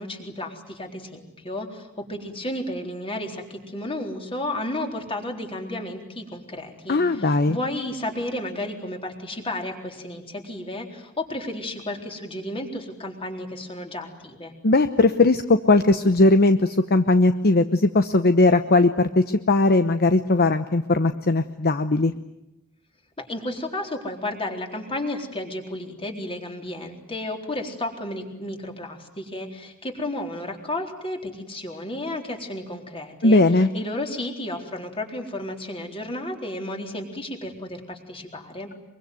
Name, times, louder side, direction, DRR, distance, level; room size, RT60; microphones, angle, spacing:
voice 1, 0.0-14.5 23.2-33.4 33.7-38.7, left 1 dB, 25° left, 3 dB, 4.0 m, -32 dB
voice 2, 6.9-7.6 14.6-22.1 33.2-33.7, left 2 dB, 45° left, 9 dB, 0.9 m, -19 dB
24.0 x 24.0 x 9.4 m, 0.91 s
head